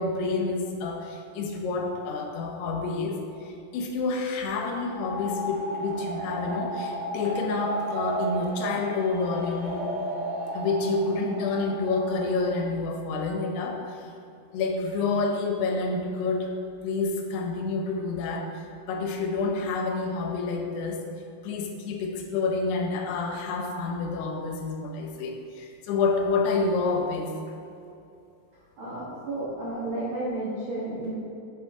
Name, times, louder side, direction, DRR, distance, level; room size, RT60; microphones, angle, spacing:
voice 1, 0.0-10.0 10.5-14.1 14.5-16.5 16.8-21.1 21.4-27.3, left 3 dB, 80° left, 2 dB, 2.9 m, -28 dB
sound 1, 4.8-12.5, right 1 dB, 60° right, 0.8 m, -34 dB
voice 2, 28.8-31.1, right 1 dB, 80° right, -8 dB, 1.1 m, -32 dB
8.4 x 7.0 x 3.6 m, 2.7 s
omnidirectional pair, 4.8 m